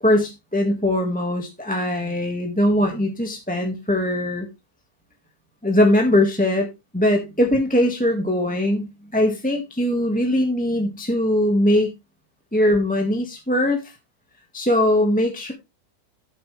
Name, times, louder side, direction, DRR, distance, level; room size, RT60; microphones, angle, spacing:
voice 1, 0.0-4.5 5.6-11.9 12.5-13.9 14.5-15.5, left 1 dB, 5° left, 2 dB, 1.7 m, -21 dB
13.5 x 7.6 x 3.3 m, 0.23 s
omnidirectional pair, 1.7 m